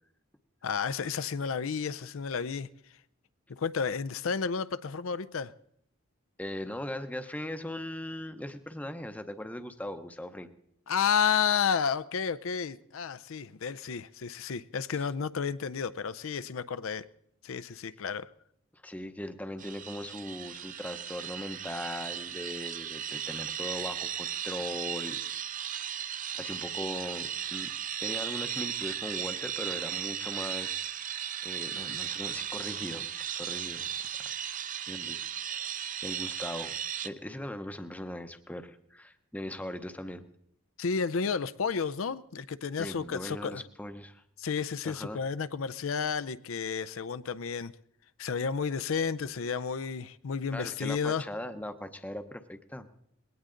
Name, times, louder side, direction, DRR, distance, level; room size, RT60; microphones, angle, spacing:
voice 1, 0.6-2.7 3.5-5.5 10.9-17.1 17.4-18.3 40.8-43.6 44.4-47.7 48.2-51.2, left 6 dB, 75° left, 0.5 m, -31 dB
voice 2, 6.4-10.5 14.9-15.0 18.7-25.2 26.3-27.7 28.0-33.9 34.2-34.3 34.8-35.2 35.5-36.7 37.0-40.2 42.8-44.2 44.8-45.2 50.5-52.9, left 1 dB, 5° left, 0.7 m, -39 dB
sound 1, 19.6-37.1, right 9 dB, 40° right, 0.6 m, -36 dB
20.5 x 17.5 x 3.8 m
head